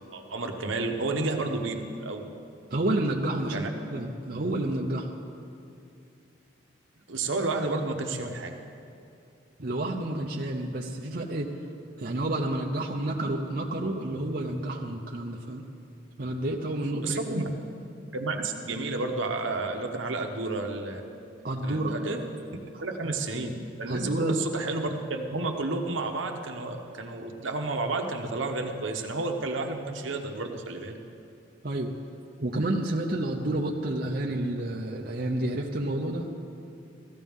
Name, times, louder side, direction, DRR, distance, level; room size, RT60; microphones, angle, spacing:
voice 1, 0.1-2.3 3.5-3.7 7.1-8.5 17.0-17.5 18.1-21.0 21.6-22.2 22.8-23.5 23.8-31.0, right 3 dB, 75° right, 4 dB, 1.0 m, -31 dB
voice 2, 2.7-3.6 3.9-5.1 9.6-11.5 12.0-15.6 16.2-17.5 21.4-22.0 23.0-23.1 23.9-24.4 31.6-31.9 32.4-36.3, right 1 dB, 45° right, -1 dB, 0.7 m, -30 dB
16.5 x 13.5 x 3.6 m, 2.6 s
head